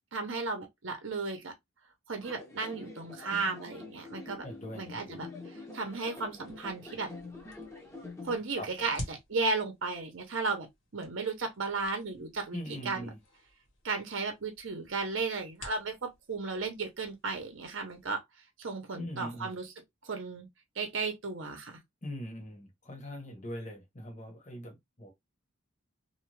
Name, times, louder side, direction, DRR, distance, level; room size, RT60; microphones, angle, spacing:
voice 1, 0.1-1.5 2.1-4.4 4.8-7.1 8.2-10.7 10.9-12.6 12.8-13.1 13.8-18.2 18.6-19.7 20.0-20.5 20.8-21.8, right 4 dB, 65° right, 0.7 m, -34 dB
sound 1, 2.2-8.4, left 3 dB, 15° left, 0.6 m, -46 dB
sound 2, 4.2-18.1, left 1 dB, 70° left, 1.3 m, -51 dB
voice 2, 4.4-5.2 8.5-8.9 12.5-13.2 19.0-19.5 22.0-25.1, equal, 35° left, 1.0 m, -42 dB
2.6 x 2.3 x 3.0 m
head